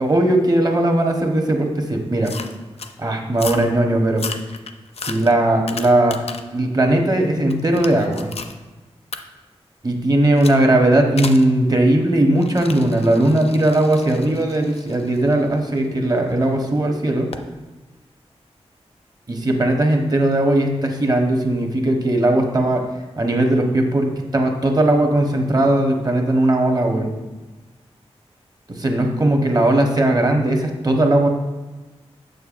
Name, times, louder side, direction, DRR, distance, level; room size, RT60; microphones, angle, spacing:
voice 1, 0.0-2.3 3.0-4.3 5.0-8.3 9.8-17.3 19.3-22.9 23.2-27.1 28.7-31.3, right 1 dB, 35° right, 2 dB, 1.0 m, -18 dB
sound 1, 2.2-2.9 3.3-3.7 4.1-6.6 7.0-8.6 9.1-9.2 10.4-10.6 11.2-11.5 12.4-16.3 17.3-17.5, left 5 dB, 65° left, 0.5 m, -34 dB
6.9 x 6.6 x 2.5 m, 1.2 s
wide cardioid pair, 90°, 11 cm